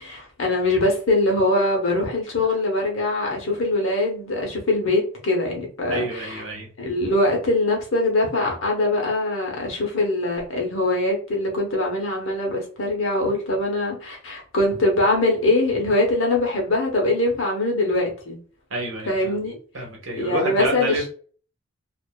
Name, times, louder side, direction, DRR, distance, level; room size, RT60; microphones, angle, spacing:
voice 1, 0.0-6.4 6.8-18.4 19.0-19.6 20.2-21.1, left 2 dB, 90° left, 0.9 m, -22 dB
voice 2, 5.9-6.7 18.7-19.4 19.7-21.1, right 2 dB, 85° right, 1.0 m, -28 dB
2.5 x 2.4 x 2.2 m
head